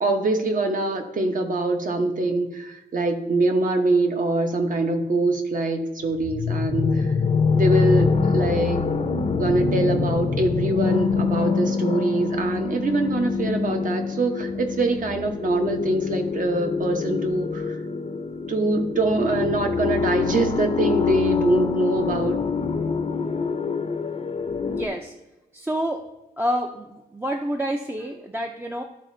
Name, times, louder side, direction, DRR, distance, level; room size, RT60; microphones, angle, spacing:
voice 1, 0.0-7.1 7.5-8.8 9.3-17.8 18.5-22.4, right 2 dB, 55° right, 4 dB, 1.0 m, -24 dB
sound 1, 6.1-24.9, left 5 dB, 40° left, 0.6 m, -25 dB
voice 2, 24.7-25.1 25.5-26.0 26.4-28.8, equal, 15° right, 2 dB, 0.5 m, -28 dB
12.0 x 4.1 x 2.7 m, 1.0 s
wide cardioid pair, 110°, 16 cm